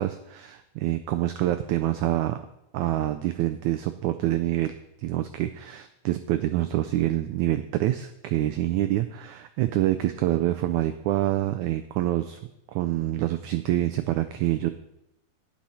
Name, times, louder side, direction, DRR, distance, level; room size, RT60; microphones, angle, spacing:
voice 1, 0.0-2.4 2.7-12.4 12.7-14.7, right 14 dB, 85° right, 9 dB, 1.7 m, -26 dB
12.0 x 10.0 x 4.2 m, 0.83 s
omnidirectional pair, 4.0 m